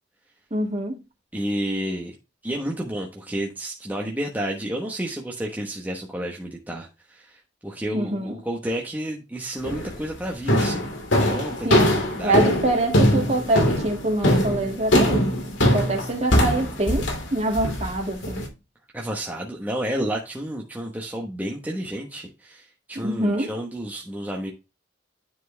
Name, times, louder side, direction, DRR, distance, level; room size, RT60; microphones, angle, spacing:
voice 1, 0.5-1.0 7.9-8.3 11.6-15.3 15.7-18.5 23.0-23.5, right 1 dB, 35° right, 2.1 m, -25 dB
voice 2, 1.3-2.1 2.4-10.9 11.2-12.5 18.9-24.5, right 1 dB, 10° right, 1.0 m, -31 dB
sound 1, 9.6-10.0 10.5-18.5, left 1 dB, 85° left, 2.6 m, -21 dB
9.6 x 4.4 x 3.3 m
head